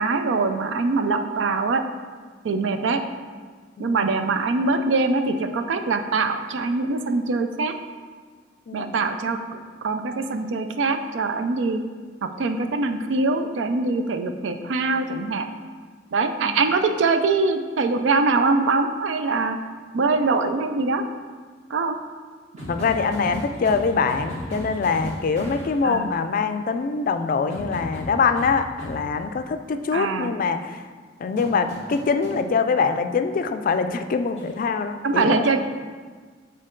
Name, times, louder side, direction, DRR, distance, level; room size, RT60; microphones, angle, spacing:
voice 1, 0.0-1.8 2.4-3.0 3.8-7.7 8.7-9.4 9.8-11.8 12.2-15.5 16.1-19.6 19.9-21.0 21.7-22.0 25.8-26.1 29.9-30.3 35.0-35.6, right 3 dB, 90° right, 7 dB, 0.4 m, -23 dB
voice 2, 3.8-4.1 8.7-8.9 16.4-16.6 22.7-30.8 31.2-35.5, left 5 dB, 50° left, 9 dB, 0.3 m, -24 dB
sound 1, 22.6-25.8 27.5-29.0 31.4-32.4 34.4-34.6, equal, 40° right, 1.4 m, -35 dB
6.4 x 3.9 x 3.8 m, 1.5 s
head